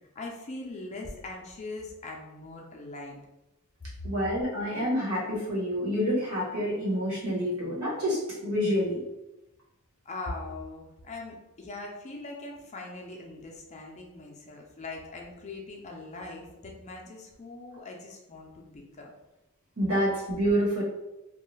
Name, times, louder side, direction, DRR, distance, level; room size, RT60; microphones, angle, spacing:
voice 1, 0.1-3.2 3.8-4.1 10.1-19.1, left 2 dB, 35° left, 0 dB, 0.5 m, -41 dB
voice 2, 4.0-9.0 19.8-20.8, equal, 90° right, -5 dB, 1.2 m, -28 dB
2.5 x 2.2 x 3.1 m, 0.96 s
head